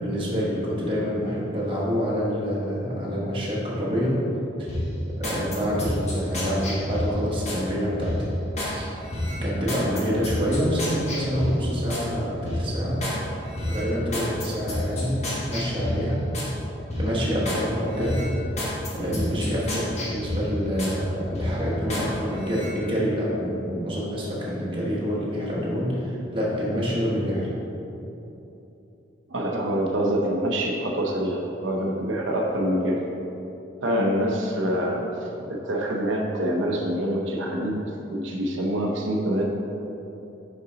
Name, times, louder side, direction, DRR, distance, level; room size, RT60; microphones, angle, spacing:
voice 1, 0.0-4.2 4.6-4.7 5.1-8.3 8.7-8.9 9.3-13.1 13.6-15.2 15.5-16.3 16.9-18.3 18.9-27.5, equal, 25° right, -5 dB, 1.1 m, -27 dB
sound 1, 4.7-7.6 8.0-8.7 9.1-12.1 12.5-13.2 13.5-16.5 16.9-17.6 18.0-21.0 21.3-22.1 22.4-22.7, left 1 dB, 35° left, 1.2 m, -29 dB
voice 2, 29.3-33.0 33.8-39.5, equal, 85° right, 0 dB, 0.7 m, -26 dB
5.5 x 5.3 x 3.9 m, 3.0 s
head